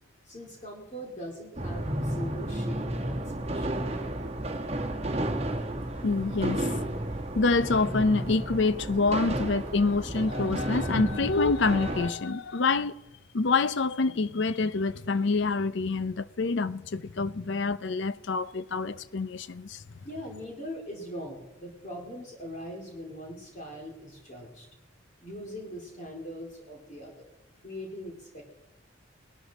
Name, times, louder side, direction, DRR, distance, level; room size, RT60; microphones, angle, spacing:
voice 1, 0.2-3.8 20.0-24.7 25.2-27.3 27.6-28.4, equal, 35° left, 2.5 m, -41 dB
sound 1, 1.6-12.1, right 1 dB, 30° right, 1.4 m, -32 dB
voice 2, 6.0-6.7 7.3-12.9 13.3-19.8, left 3 dB, 60° left, 0.5 m, -26 dB
19.5 x 12.5 x 4.1 m
head